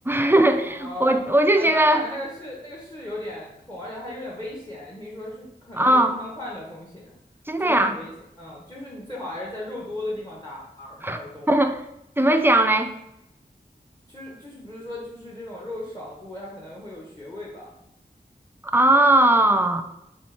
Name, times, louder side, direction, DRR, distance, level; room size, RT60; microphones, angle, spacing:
voice 1, 0.1-2.0 5.8-6.2 7.5-8.0 11.0-11.2 11.5-11.8 12.2-12.9 18.7-19.8, right 1 dB, 10° right, 7 dB, 0.4 m, -19 dB
voice 2, 0.6-1.2 1.6-7.1 7.6-11.5 14.1-17.8, left 1 dB, 15° left, -3 dB, 0.9 m, -37 dB
4.2 x 3.4 x 3.2 m, 0.84 s
wide cardioid pair, 60°, 18 cm